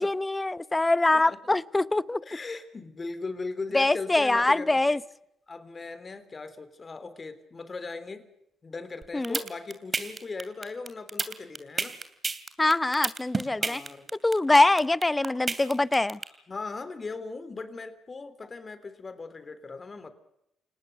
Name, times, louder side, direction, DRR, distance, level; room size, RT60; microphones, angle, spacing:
voice 1, 0.0-2.2 3.7-5.0 9.1-9.4 12.6-13.8 14.2-16.2, left 2 dB, 15° left, 0.8 m, -23 dB
voice 2, 2.2-5.0 5.5-8.3 8.6-12.0 13.6-14.1 16.5-20.1, left 3 dB, 35° left, 3.6 m, -38 dB
sound 1, 9.0-16.2, right 4 dB, 30° right, 2.7 m, -30 dB
29.5 x 18.5 x 6.9 m
supercardioid pair, 60°, 0 cm